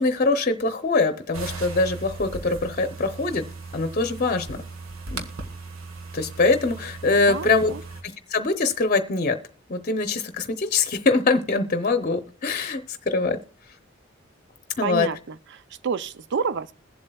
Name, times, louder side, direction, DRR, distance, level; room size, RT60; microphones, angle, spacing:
voice 1, 0.0-3.4 3.7-4.6 5.1-5.2 6.1-7.7 8.3-9.4 9.7-13.4 14.8-15.1, left 3 dB, 40° left, 0.7 m, -23 dB
sound 1, 1.3-8.0, right 3 dB, 85° right, 1.4 m, -37 dB
voice 2, 7.2-7.8 14.8-16.8, right 5 dB, 60° right, 0.5 m, -29 dB
22.0 x 7.6 x 2.3 m
head